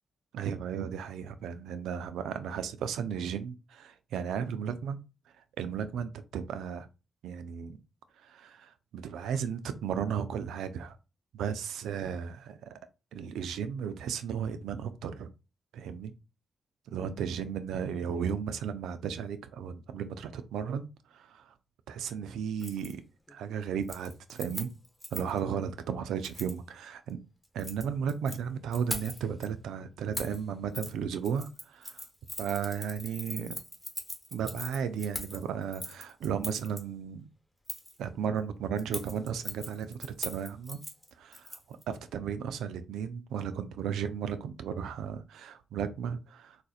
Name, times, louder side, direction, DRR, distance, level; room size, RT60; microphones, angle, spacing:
voice 1, 0.3-5.0 5.6-6.9 7.2-7.8 8.2-11.0 11.3-12.8 13.1-15.3 15.7-16.1 16.9-21.5 21.9-23.0 23.3-24.7 25.1-27.2 27.5-32.0 32.4-33.6 34.3-37.3 38.0-40.8 41.2-46.6, right 7 dB, 85° right, 0.4 m, -35 dB
Keys jangling, 22.6-22.9 23.3-23.5 23.8-25.4 26.2-26.6 27.4-28.4 28.7-29.5 30.1-30.4 30.7-30.9 31.2-36.8 37.7-38.0 38.8-41.8 42.1-42.2, left 1 dB, 5° left, 1.2 m, -41 dB
3.9 x 2.5 x 2.4 m
supercardioid pair, 50°, 0 cm